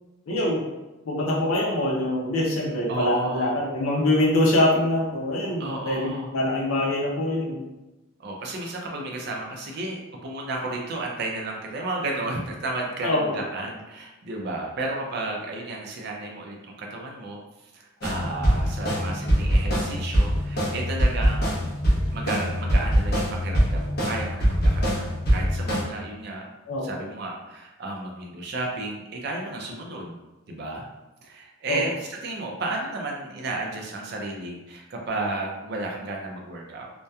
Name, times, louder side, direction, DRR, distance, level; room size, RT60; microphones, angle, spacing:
voice 1, 0.3-0.6 1.1-7.6 13.0-13.4 26.7-26.9 31.7-31.8, left 1 dB, 85° left, -2 dB, 0.5 m, -24 dB
voice 2, 2.9-3.5 5.6-6.3 8.2-21.6 22.1-26.5 26.8-30.2 30.5-30.8 31.2-36.9, right 2 dB, 50° right, 0 dB, 0.4 m, -33 dB
sound 1, 18.0-25.8, equal, 50° left, 0.7 m, -23 dB
2.7 x 2.1 x 2.3 m, 1.0 s
head